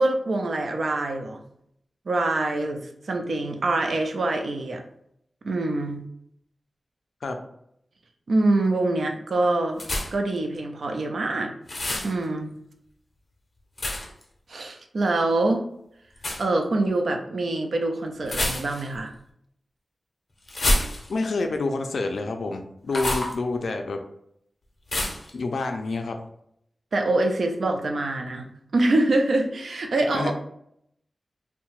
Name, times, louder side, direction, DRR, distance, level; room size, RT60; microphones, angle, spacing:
voice 1, 0.0-1.4 2.1-4.8 5.4-6.0 8.3-9.8 10.1-11.5 12.0-12.5 14.5-15.7 16.4-19.1 26.9-28.5 28.7-30.3, right 2 dB, 70° right, 4 dB, 0.4 m, -25 dB
sound 1, 9.8-10.3 11.7-12.1 13.8-14.2 16.2-16.4 18.2-19.0 20.5-21.3 22.9-23.3 24.9-25.3, left 1 dB, 45° left, 0.6 m, -27 dB
voice 2, 21.1-24.0 25.3-26.2 30.1-30.3, left 3 dB, 85° left, 4 dB, 0.3 m, -28 dB
2.7 x 2.1 x 2.9 m, 0.73 s
wide cardioid pair, 125°, 0 cm